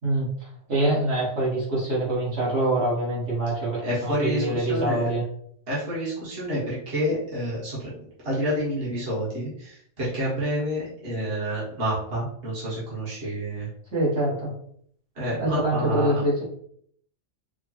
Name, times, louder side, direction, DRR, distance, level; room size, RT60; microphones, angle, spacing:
voice 1, 0.0-5.2 13.9-14.5 15.4-16.4, right 1 dB, 65° right, -7 dB, 1.9 m, -25 dB
voice 2, 3.8-5.1 5.7-13.7 15.1-16.2, equal, 50° right, -8 dB, 1.6 m, -29 dB
5.0 x 2.2 x 3.0 m, 0.65 s
omnidirectional pair, 1.3 m